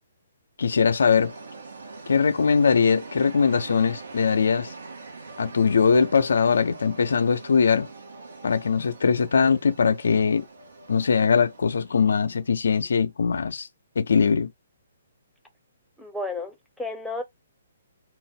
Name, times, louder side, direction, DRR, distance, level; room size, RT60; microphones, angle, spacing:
voice 1, 0.6-1.3 2.1-4.7 5.4-7.9 8.4-10.4 10.9-13.7 14.0-14.5, left 5 dB, 70° left, 0.3 m, -21 dB
sound 1, 1.1-12.9, right 3 dB, 75° right, 0.7 m, -43 dB
voice 2, 16.0-17.2, left 2 dB, ahead, 0.7 m, -32 dB
2.3 x 2.0 x 3.5 m
figure-of-eight pair, 130°, 0 cm